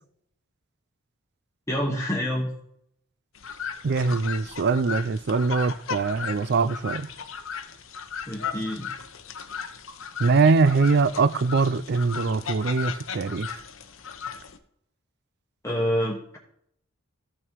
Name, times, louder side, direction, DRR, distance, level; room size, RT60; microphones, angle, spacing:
voice 1, 1.7-2.5 8.3-8.9 15.6-16.4, equal, 15° left, 1.2 m, -27 dB
sound 1, 3.3-14.6, left 7 dB, 80° left, 0.9 m, -36 dB
voice 2, 3.8-7.1 10.2-13.5, right 4 dB, 55° right, 0.5 m, -22 dB
14.0 x 6.3 x 4.6 m
head